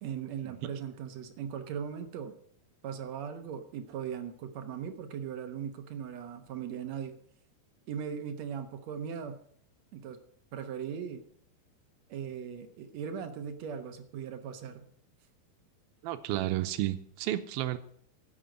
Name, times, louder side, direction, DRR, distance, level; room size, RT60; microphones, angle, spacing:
voice 1, 0.0-2.4 2.8-7.2 7.9-9.4 9.9-10.2 10.5-11.2 12.1-14.9, right 7 dB, 65° right, 7 dB, 1.9 m, -39 dB
voice 2, 16.0-17.8, right 14 dB, 90° right, 11 dB, 2.6 m, -32 dB
11.5 x 8.0 x 9.1 m, 0.63 s
omnidirectional pair, 4.3 m